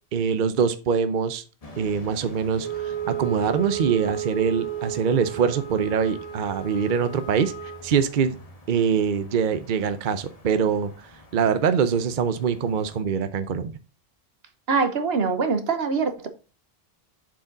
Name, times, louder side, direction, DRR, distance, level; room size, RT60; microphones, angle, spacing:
voice 1, 0.1-1.4 1.8-8.4 8.7-13.7, right 6 dB, 55° right, 0.8 m, -24 dB
sound 1, 1.6-13.0, left 2 dB, 35° left, 1.3 m, -48 dB
Wind instrument woodwind instrument, 2.6-7.9, right 10 dB, 25° right, 2.3 m, -33 dB
voice 2, 14.7-16.3, right 5 dB, 75° right, 1.2 m, -23 dB
7.3 x 4.9 x 3.8 m
omnidirectional pair, 1.0 m